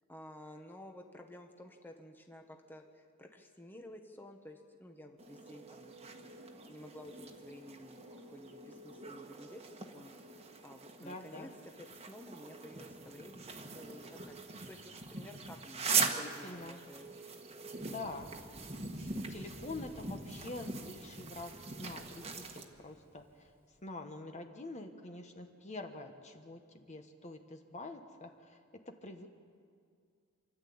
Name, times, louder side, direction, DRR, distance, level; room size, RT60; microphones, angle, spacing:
voice 1, 0.1-11.5 11.8-14.4 14.7-17.4, left 1 dB, 10° left, 3 dB, 1.2 m, -53 dB
sound 1, 5.2-22.6, right 4 dB, 30° right, 1.5 m, -41 dB
voice 2, 11.0-11.5 15.9-16.8 17.8-18.3 18.9-23.5 23.8-28.6 28.8-29.3, left 2 dB, 35° left, 5 dB, 1.3 m, -46 dB
Thunder, 18.0-23.9, right 1 dB, 10° right, 1.0 m, -56 dB
28.5 x 11.5 x 8.7 m, 2.2 s
head